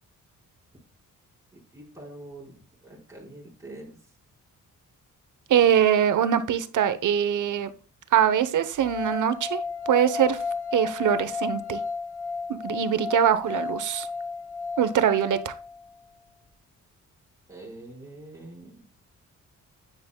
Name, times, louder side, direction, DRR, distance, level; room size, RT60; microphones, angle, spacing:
voice 1, 1.5-2.5 2.8-4.0 17.5-18.8, right 2 dB, 10° right, -4 dB, 4.4 m, -44 dB
voice 2, 5.5-7.7 8.1-10.4 10.7-11.8 12.5-14.1 14.8-15.5, right 9 dB, 70° right, 12 dB, 0.9 m, -23 dB
sound 1, 8.8-15.9, left 4 dB, 55° left, 2.6 m, -33 dB
9.4 x 9.1 x 2.3 m, 0.37 s
cardioid pair, 120°, 32 cm